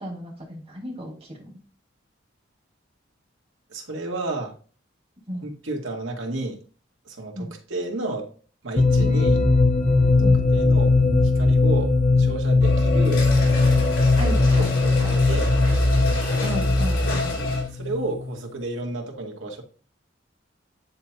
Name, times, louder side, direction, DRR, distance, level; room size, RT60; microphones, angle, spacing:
voice 1, 0.0-1.6 5.3-5.4 7.3-7.5 9.0-9.1 10.2-10.4 14.2-15.2 16.4-17.4, equal, 30° right, 2.4 m, -34 dB
voice 2, 3.7-4.6 5.4-6.6 7.1-8.3 8.6-9.4 10.2-11.0 11.2-13.3 14.5-15.5 17.7-19.6, right 2 dB, 85° right, 1.8 m, -31 dB
sound 1, 8.8-18.4, left 3 dB, 40° left, 0.7 m, -20 dB
sound 2, 12.6-17.6, left 1 dB, 60° left, 1.6 m, -24 dB
sound 3, 13.0-17.8, left 2 dB, 80° left, 3.1 m, -32 dB
9.6 x 4.3 x 2.3 m
head